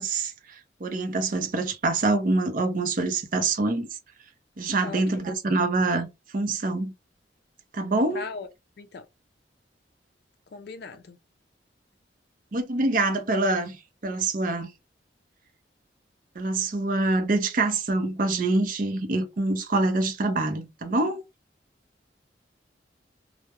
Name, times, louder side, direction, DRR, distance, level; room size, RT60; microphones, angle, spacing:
voice 1, 0.0-3.9 4.6-6.1 6.3-6.9 7.7-8.2 12.5-13.8 14.0-14.7 16.4-21.2, right 2 dB, 50° right, 0.5 m, -25 dB
voice 2, 4.8-5.2 8.1-8.5 8.8-9.0 10.5-11.2, left 3 dB, 60° left, 0.3 m, -38 dB
2.2 x 2.0 x 2.8 m
head